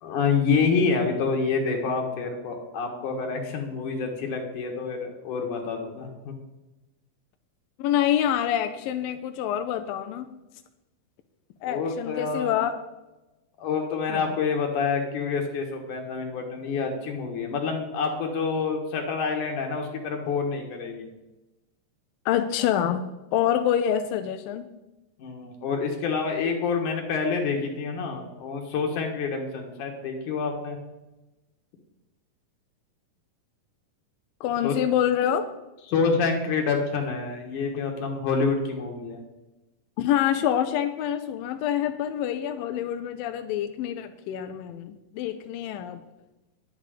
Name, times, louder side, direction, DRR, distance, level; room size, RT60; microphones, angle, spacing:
voice 1, 0.0-6.3 11.6-12.5 13.6-21.1 25.2-30.8 34.6-34.7 35.9-39.2, left 5 dB, 65° left, 2 dB, 2.7 m, -27 dB
voice 2, 7.8-10.3 11.6-12.7 14.1-14.4 22.3-23.0 23.3-24.7 34.4-35.4 40.0-46.0, left 10 dB, 85° left, 8 dB, 2.3 m, -26 dB
10.5 x 9.0 x 5.0 m, 1.0 s
omnidirectional pair, 4.0 m